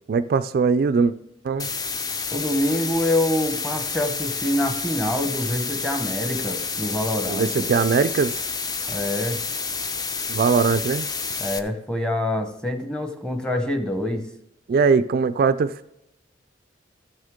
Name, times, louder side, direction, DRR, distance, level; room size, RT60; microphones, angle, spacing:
voice 1, 0.1-1.1 1.4-1.7 7.3-8.4 10.3-11.1 14.7-15.9, right 5 dB, 50° right, 11 dB, 0.3 m, -21 dB
sound 1, 1.6-11.6, left 5 dB, 20° left, 0.5 m, -29 dB
voice 2, 2.3-7.7 8.9-9.4 11.4-14.3, left 1 dB, 5° left, 5 dB, 0.9 m, -26 dB
14.5 x 6.4 x 3.6 m, 0.85 s
head